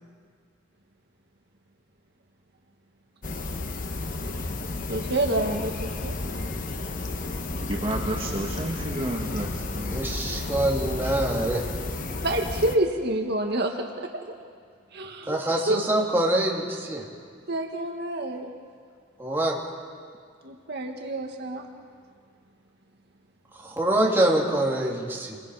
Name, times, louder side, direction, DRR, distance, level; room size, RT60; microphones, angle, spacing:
sound 1, 3.2-12.8, left 2 dB, 45° left, 1.1 m, -32 dB
voice 1, 4.8-6.2 12.2-13.9 14.2-14.3 14.9-15.4 15.7-15.8 17.5-18.5 20.4-21.7, right 1 dB, 60° right, 2 dB, 1.6 m, -28 dB
voice 2, 7.5-10.0, right 1 dB, 30° right, -1 dB, 1.8 m, -31 dB
voice 3, 9.9-11.6 15.3-17.0 19.2-19.6 23.5-25.4, right 1 dB, 10° right, -2 dB, 3.1 m, -25 dB
29.0 x 22.0 x 4.9 m, 2.1 s
head